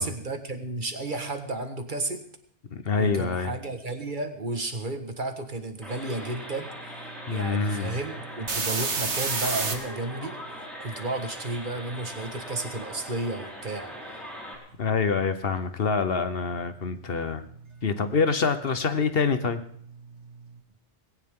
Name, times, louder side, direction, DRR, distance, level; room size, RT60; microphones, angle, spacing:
voice 1, 0.0-2.2 3.0-6.7 7.3-10.4 10.8-13.9, right 2 dB, 45° right, 7 dB, 1.7 m, -32 dB
voice 2, 2.7-3.5 7.3-8.0 14.8-17.4 17.8-19.6, left 5 dB, 60° left, 10 dB, 1.2 m, -26 dB
sound 1, 5.8-14.6, equal, ahead, 5.1 m, -40 dB
sound 2, 8.0-9.8 18.1-18.2 18.6-20.3, right 4 dB, 85° right, 1.9 m, -30 dB
19.0 x 17.5 x 3.8 m, 0.62 s
omnidirectional pair, 1.2 m